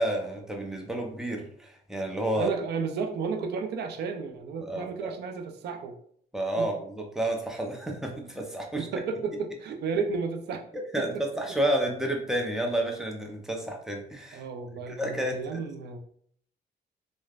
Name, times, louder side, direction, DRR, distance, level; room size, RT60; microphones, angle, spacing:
voice 1, 0.0-2.5 4.6-5.2 6.3-8.9 10.9-14.4 14.9-15.6, right 1 dB, 5° right, 1 dB, 0.6 m, -30 dB
voice 2, 2.4-5.9 6.6-6.7 8.7-10.6 11.0-11.2 14.3-16.0, right 5 dB, 70° right, 5 dB, 0.4 m, -33 dB
3.1 x 2.1 x 2.4 m, 0.62 s
cardioid pair, 90°, 18 cm